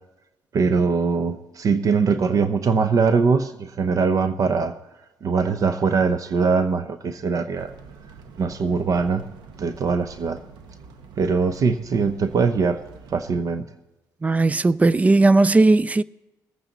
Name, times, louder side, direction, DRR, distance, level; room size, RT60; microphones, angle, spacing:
voice 1, 0.5-4.7 5.2-7.7 8.4-9.3 9.6-10.4 11.2-12.8 13.1-13.7, right 5 dB, 50° right, 0.8 m, -22 dB
sound 1, 7.5-13.3, right 5 dB, 80° right, 1.2 m, -46 dB
voice 2, 14.2-16.0, right 2 dB, 20° right, 0.3 m, -17 dB
20.5 x 8.9 x 4.1 m
cardioid pair, 95°, 7 cm